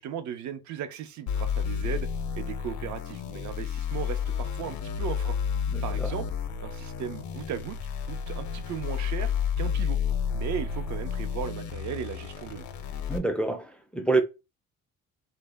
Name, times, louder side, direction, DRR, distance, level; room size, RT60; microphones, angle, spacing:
voice 1, 0.0-2.1 2.4-5.4 5.8-6.3 6.6-9.3 9.6-10.0 10.3-12.7, right 9 dB, 70° right, 0.6 m, -36 dB
sound 1, 1.3-13.2, left 7 dB, 70° left, 0.5 m, -31 dB
voice 2, 5.7-6.1 13.1-14.2, right 3 dB, 5° left, 0.3 m, -27 dB
2.1 x 2.0 x 3.3 m
cardioid pair, 90°, 30 cm